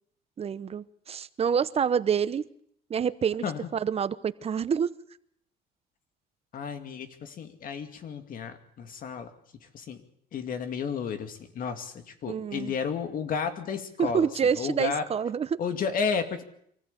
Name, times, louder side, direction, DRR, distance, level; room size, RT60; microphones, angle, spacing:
voice 1, 0.4-2.5 2.9-3.4 3.7-4.9 12.3-12.7 14.0-15.6, right 7 dB, 35° right, 15 dB, 0.9 m, -27 dB
voice 2, 6.5-9.3 9.7-10.0 10.3-14.3 14.5-15.0 15.6-16.4, left 6 dB, 55° left, 7 dB, 2.4 m, -32 dB
24.5 x 15.0 x 8.4 m, 0.69 s
cardioid pair, 110°, 17 cm